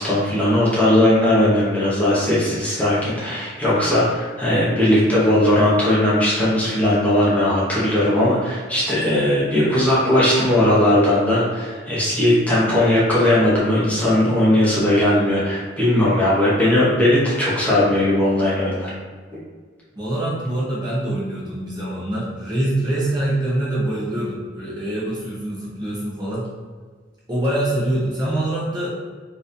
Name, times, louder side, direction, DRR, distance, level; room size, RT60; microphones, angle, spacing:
voice 1, 0.0-18.9, left 1 dB, 10° left, -8 dB, 0.9 m, -18 dB
voice 2, 20.0-26.5 27.3-28.9, right 1 dB, 25° right, -7 dB, 0.8 m, -24 dB
3.9 x 2.7 x 2.6 m, 1.5 s
head